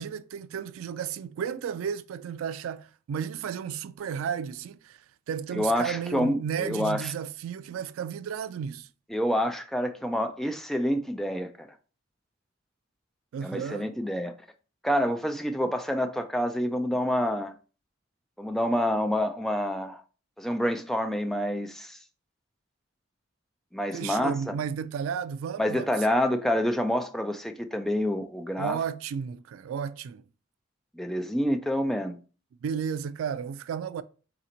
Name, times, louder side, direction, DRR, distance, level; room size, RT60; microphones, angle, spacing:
voice 1, 0.0-8.9 13.3-13.9 23.9-26.2 28.6-30.2 32.6-34.0, right 7 dB, 90° right, 0.3 m, -33 dB
voice 2, 5.5-7.1 9.1-11.7 13.4-14.3 14.8-17.5 18.4-20.0 20.4-22.0 23.7-24.5 25.6-28.8 30.9-32.2, equal, ahead, 0.3 m, -27 dB
4.1 x 2.9 x 3.8 m
head